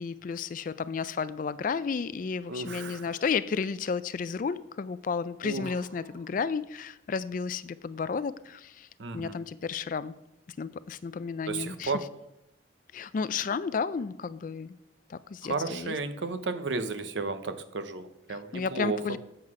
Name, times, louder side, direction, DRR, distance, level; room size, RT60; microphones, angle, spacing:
voice 1, 0.0-8.9 9.1-10.1 10.6-11.9 12.9-14.8 15.1-16.0 18.3-19.2, left 5 dB, 45° left, 16 dB, 0.3 m, -32 dB
voice 2, 2.5-3.1 5.4-5.6 9.0-9.3 11.5-12.0 15.4-19.0, right 3 dB, 80° right, 10 dB, 0.7 m, -33 dB
7.8 x 7.5 x 4.8 m, 0.83 s
head